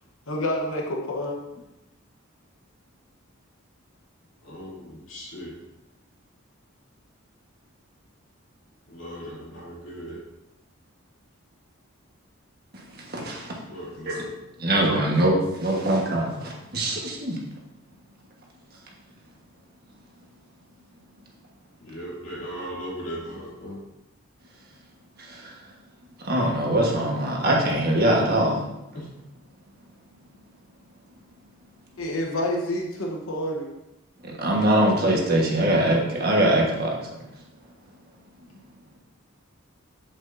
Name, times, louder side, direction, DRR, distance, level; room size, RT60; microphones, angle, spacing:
voice 1, 0.3-1.4 32.0-33.7, left 1 dB, 85° left, 0 dB, 1.1 m, -28 dB
voice 2, 4.4-5.6 8.9-10.2 13.7-14.3 21.8-23.8 28.9-29.1, equal, 60° left, -6 dB, 2.9 m, -37 dB
voice 3, 12.7-13.6 14.1-14.2 14.6-17.4 25.2-25.5 26.2-28.6 34.2-37.0, right 1 dB, 45° right, -2 dB, 1.4 m, -23 dB
7.8 x 7.5 x 2.7 m, 0.92 s
head